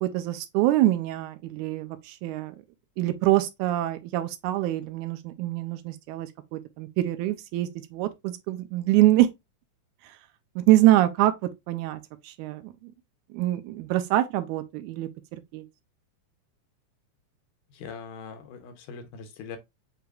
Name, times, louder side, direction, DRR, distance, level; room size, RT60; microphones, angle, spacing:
voice 1, 0.0-2.6 3.0-9.3 10.6-12.9 13.3-15.7, right 15 dB, 80° right, 1.9 m, -25 dB
voice 2, 17.7-19.6, left 6 dB, 90° left, 2.4 m, -41 dB
6.6 x 2.9 x 2.3 m
omnidirectional pair, 3.6 m